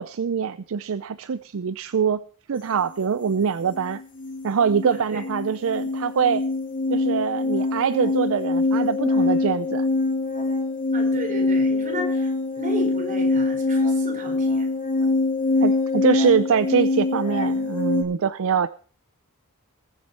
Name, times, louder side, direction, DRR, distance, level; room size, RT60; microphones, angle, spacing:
voice 1, 0.0-2.2 2.5-4.0 4.4-6.4 6.9-9.9 15.6-18.7, right 6 dB, 65° right, 15 dB, 0.5 m, -24 dB
sound 1, 3.2-3.4 3.7-18.0, left 3 dB, 40° left, 2.4 m, -24 dB
voice 2, 4.9-5.2 10.9-14.7, equal, 35° right, 2 dB, 4.8 m, -33 dB
21.5 x 7.3 x 4.3 m, 0.42 s
head